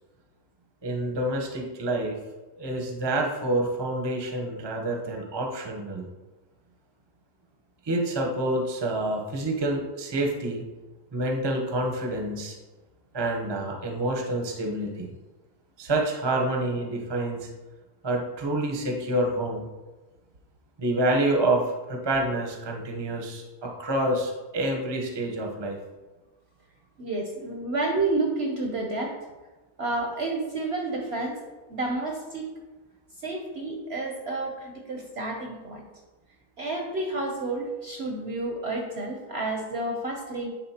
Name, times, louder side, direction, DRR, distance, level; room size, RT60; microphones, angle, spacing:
voice 1, 0.8-2.2 2.6-6.1 7.8-10.6 11.1-12.6 13.1-15.1 15.8-17.5 18.0-19.7 20.8-25.8, right 1 dB, 25° right, 1 dB, 0.5 m, -27 dB
voice 2, 27.0-29.1 29.8-31.4 31.7-32.5 33.2-35.8 36.6-40.5, right 2 dB, 55° right, 1 dB, 0.7 m, -30 dB
10.5 x 3.7 x 2.8 m, 1.2 s
omnidirectional pair, 1.7 m